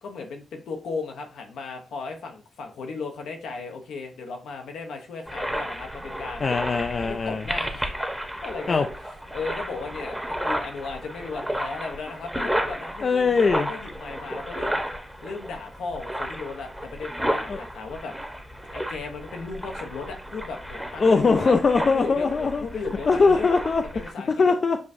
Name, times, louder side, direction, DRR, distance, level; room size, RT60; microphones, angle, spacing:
voice 1, 0.0-6.4 7.0-7.9 8.4-8.8 9.3-14.8 15.2-18.1 18.7-21.5 21.9-23.5 23.9-24.6, left 4 dB, 85° left, 4 dB, 0.7 m, -36 dB
sound 1, 5.3-24.1, equal, 5° right, 0.9 m, -33 dB
voice 2, 6.4-7.4 8.7-8.9 13.0-13.7 17.5-17.6 21.0-22.6 23.1-24.8, left 4 dB, 55° left, 6 dB, 0.3 m, -21 dB
6.1 x 2.5 x 2.5 m, 0.36 s
supercardioid pair, 50°, 0 cm